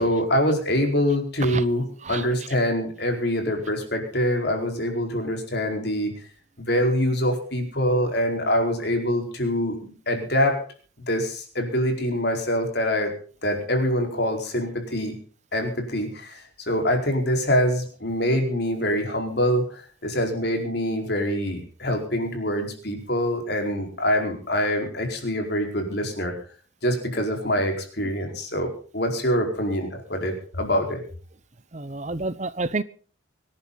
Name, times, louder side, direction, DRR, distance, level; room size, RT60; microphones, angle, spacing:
voice 1, 0.0-6.1 6.6-10.6 11.1-13.1 13.4-15.1 15.5-26.3 26.8-31.0, equal, 55° left, 4.6 m, -25 dB
voice 2, 31.7-32.8, right 3 dB, 35° right, 0.8 m, -29 dB
25.0 x 11.0 x 4.1 m
head